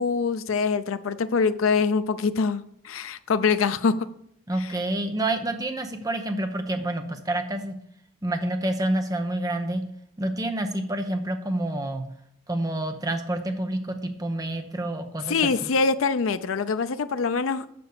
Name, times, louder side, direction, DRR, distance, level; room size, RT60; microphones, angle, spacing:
voice 1, 0.0-3.9 4.6-4.7 15.3-17.7, left 5 dB, 90° left, 11 dB, 0.5 m, -24 dB
voice 2, 4.5-7.8 8.2-9.8 10.2-12.0 12.5-15.7, right 1 dB, 20° right, 5 dB, 0.8 m, -28 dB
6.9 x 6.8 x 6.6 m, 0.75 s
head